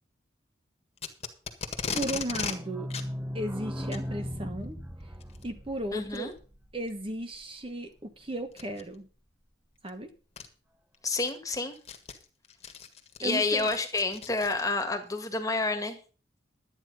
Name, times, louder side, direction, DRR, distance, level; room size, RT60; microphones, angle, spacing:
Packing tape duct tape, 1.0-2.6 2.9-3.1 3.8-4.1 5.2-5.4 6.1-6.2 6.9-7.0 8.5-8.8 9.9-10.0 10.4-10.5 10.9-14.9, left 6 dB, 35° left, 1.7 m, -37 dB
voice 1, 1.9-2.9 3.3-5.1 5.4-6.3 6.7-9.1 9.8-10.1 13.2-13.7, right 1 dB, 30° right, 7 dB, 1.2 m, -35 dB
sound 1, 2.1-7.6 8.0-8.1 8.2-8.3 8.6-8.7, equal, 10° right, 0.8 m, -39 dB
voice 2, 5.9-6.3 11.0-11.7 13.2-16.0, left 3 dB, 20° left, 6 dB, 1.8 m, -29 dB
12.0 x 9.5 x 5.4 m, 0.38 s
head